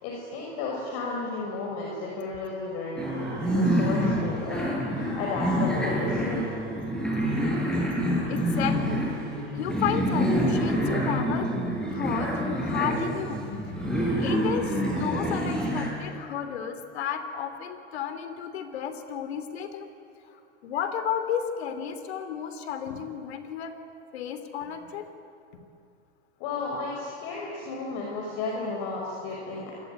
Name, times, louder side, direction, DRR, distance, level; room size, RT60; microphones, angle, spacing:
voice 1, 0.0-6.4 26.4-29.7, left 3 dB, 45° left, -1 dB, 5.7 m, -33 dB
sound 1, 3.0-15.9, equal, ahead, 8.0 m, -27 dB
voice 2, 8.0-9.1 9.6-11.5 11.9-13.4 14.2-19.9 20.3-23.7 24.1-25.1, left 8 dB, 65° left, 9 dB, 3.2 m, -33 dB
27.0 x 21.5 x 9.4 m, 2.5 s
hypercardioid pair, 110°, 35 cm